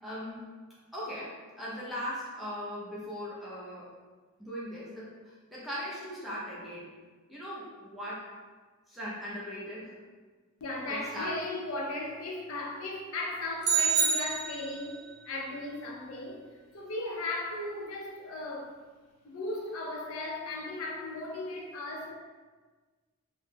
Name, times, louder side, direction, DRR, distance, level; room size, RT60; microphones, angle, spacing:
voice 1, 0.0-0.4 0.9-3.9 4.4-6.9 7.3-8.3 8.9-10.0 10.9-11.3, equal, ahead, -8 dB, 0.5 m, -39 dB
voice 2, 10.6-15.0 15.3-16.4 16.7-18.7 19.2-22.1, left 2 dB, 75° left, -1 dB, 0.5 m, -36 dB
sound 1, 13.6-15.0, right 6 dB, 80° right, 0.6 m, -27 dB
2.2 x 2.0 x 3.2 m, 1.4 s
head